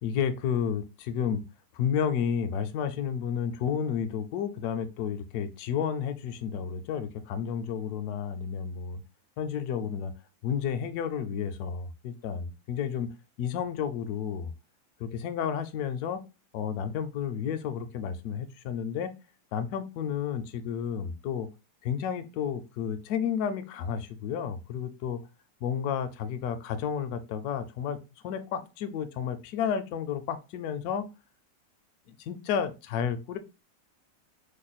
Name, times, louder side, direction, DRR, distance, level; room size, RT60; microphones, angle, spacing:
voice 1, 0.0-1.4 1.7-9.0 9.4-10.1 10.4-13.1 13.4-14.5 15.0-16.2 16.5-19.1 19.5-21.5 21.8-25.2 25.6-31.1 32.1-33.4, left 8 dB, 70° left, 0.9 m, -31 dB
3.1 x 2.2 x 4.0 m
omnidirectional pair, 2.0 m